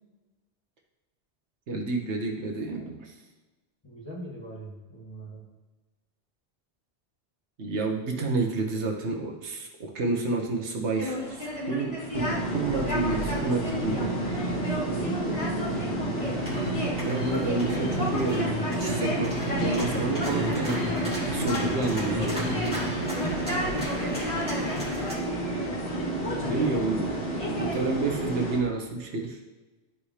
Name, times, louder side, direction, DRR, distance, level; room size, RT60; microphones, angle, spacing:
voice 1, 1.7-3.1 7.6-14.1 17.0-18.4 18.7-20.8 21.3-22.4 26.4-29.4, right 3 dB, 75° right, 1 dB, 1.3 m, -30 dB
voice 2, 3.8-5.5 13.8-14.1 14.7-16.0 23.5-25.5 26.3-26.9, left 1 dB, 25° left, -4 dB, 1.5 m, -41 dB
sound 1, 11.0-27.8, left 1 dB, 65° left, 2.3 m, -35 dB
sound 2, 12.1-28.6, right 1 dB, 40° left, 1.6 m, -31 dB
sound 3, 16.1-25.1, equal, 5° right, 2.4 m, -33 dB
12.5 x 4.9 x 2.9 m, 1.2 s
omnidirectional pair, 1.2 m